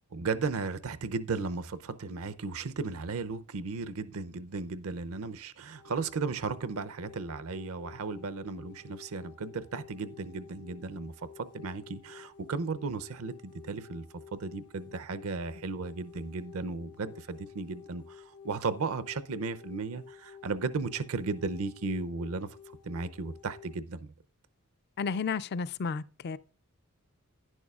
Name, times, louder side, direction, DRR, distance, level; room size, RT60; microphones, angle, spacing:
voice 1, 0.1-14.0 14.3-22.5 22.8-24.1, right 4 dB, 70° right, 0.6 m, -35 dB
sound 1, 5.8-23.8, left 7 dB, 85° left, 0.9 m, -52 dB
voice 2, 25.0-26.4, left 5 dB, 50° left, 0.4 m, -32 dB
11.0 x 10.5 x 2.4 m
head